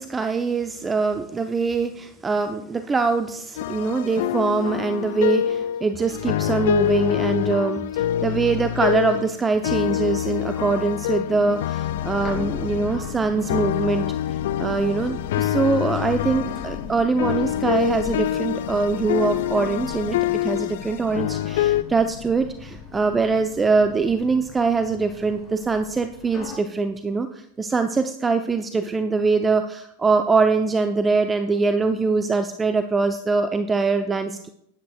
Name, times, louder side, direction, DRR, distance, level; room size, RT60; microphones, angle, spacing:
voice 1, 0.0-14.1 14.6-34.5, right 4 dB, 15° right, 8 dB, 0.6 m, -23 dB
sound 1, 3.6-9.4 9.6-21.8, left 12 dB, 55° left, 0.3 m, -26 dB
sound 2, 11.8-26.6, left 6 dB, 25° left, 4.4 m, -38 dB
18.5 x 10.0 x 2.4 m, 0.74 s
figure-of-eight pair, 90°, 0 cm